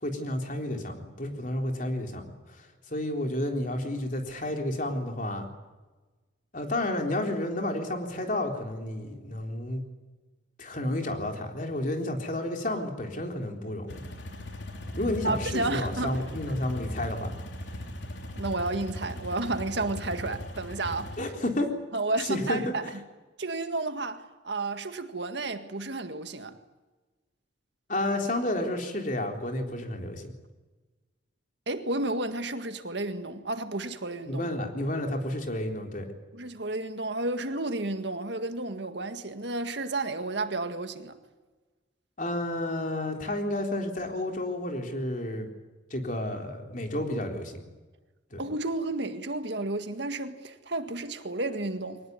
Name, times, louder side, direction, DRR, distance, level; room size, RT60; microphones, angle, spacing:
voice 1, 0.0-5.5 6.5-9.8 10.6-14.1 15.0-17.3 21.2-21.7 22.2-22.7 27.9-30.3 34.3-36.1 42.2-45.5 45.9-47.6 48.3-48.4, left 1 dB, 40° left, 3.7 m, -31 dB
sound 1, 13.9-21.2, left 1 dB, 65° left, 3.5 m, -38 dB
voice 2, 15.2-16.2 18.4-21.1 21.9-22.8 23.4-26.6 31.7-34.5 36.3-41.2 48.4-52.0, right 2 dB, 65° right, 1.8 m, -32 dB
24.0 x 19.0 x 9.6 m
head